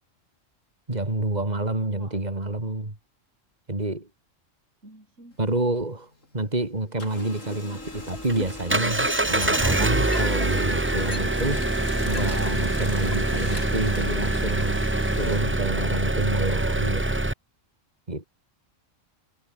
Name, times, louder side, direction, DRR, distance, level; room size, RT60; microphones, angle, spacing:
voice 1, 0.9-3.0 3.7-4.1 5.4-11.6 12.0-14.8 15.2-17.2 18.1-18.2, right 2 dB, 35° right, 3.7 m, -28 dB
voice 2, 1.9-2.5 4.8-5.4, right 1 dB, 75° right, 8.5 m, -49 dB
Printer, 5.3-6.6 6.9-16.4, left 2 dB, 85° left, 6.2 m, -40 dB
Engine, 7.8-17.3, right 2 dB, 10° right, 0.8 m, -25 dB
sound 1, 8.1-9.7 10.1-12.5 13.1-13.2, left 4 dB, 55° left, 2.3 m, -38 dB
omnidirectional pair, 1.3 m